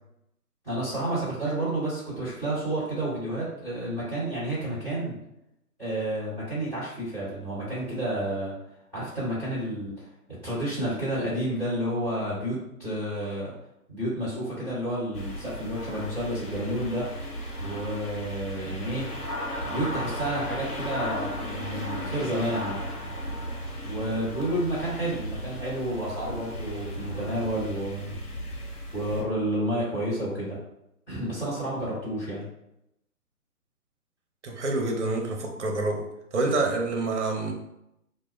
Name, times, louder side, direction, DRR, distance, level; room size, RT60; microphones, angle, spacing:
voice 1, 0.6-5.2 5.8-8.5 8.9-9.9 10.3-13.5 13.9-17.1 17.6-19.1 19.6-22.8 23.8-28.2 28.9-30.6 31.1-32.4, right 1 dB, 5° left, -17 dB, 1.2 m, -30 dB
sound 1, 15.1-29.2, equal, 80° left, 0.9 m, -35 dB
voice 2, 34.4-37.5, right 2 dB, 50° right, 2 dB, 0.7 m, -27 dB
2.2 x 2.1 x 3.1 m, 0.82 s
figure-of-eight pair, 140°, 45 cm